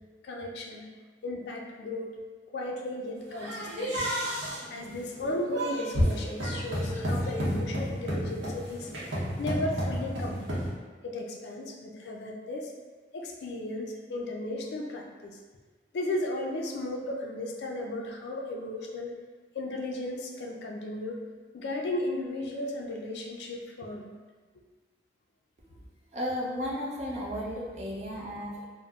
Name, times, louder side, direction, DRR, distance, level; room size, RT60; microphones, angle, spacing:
voice 1, 0.2-0.9 1.2-2.1 2.5-4.1 4.7-8.9 9.4-10.6 11.0-12.7 13.1-15.4 15.9-19.2 19.5-21.2 21.5-24.1, left 1 dB, 70° left, 0 dB, 0.4 m, -35 dB
sound 1, 3.3-10.7, equal, 90° right, 0.7 m, -31 dB
voice 2, 26.1-28.6, equal, 40° right, -4 dB, 0.4 m, -34 dB
3.5 x 2.0 x 2.3 m, 1.4 s
head